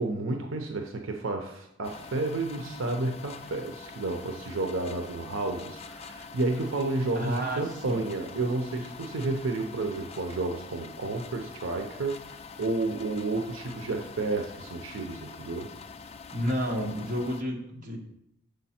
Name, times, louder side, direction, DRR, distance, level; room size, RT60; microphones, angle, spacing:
voice 1, 0.0-15.7, right 2 dB, 80° right, 4 dB, 0.7 m, -31 dB
sound 1, 1.8-17.4, left 5 dB, 30° left, 0.3 m, -45 dB
voice 2, 7.1-8.1 16.3-18.0, equal, 45° right, -1 dB, 1.3 m, -31 dB
6.2 x 5.2 x 4.3 m, 0.77 s
head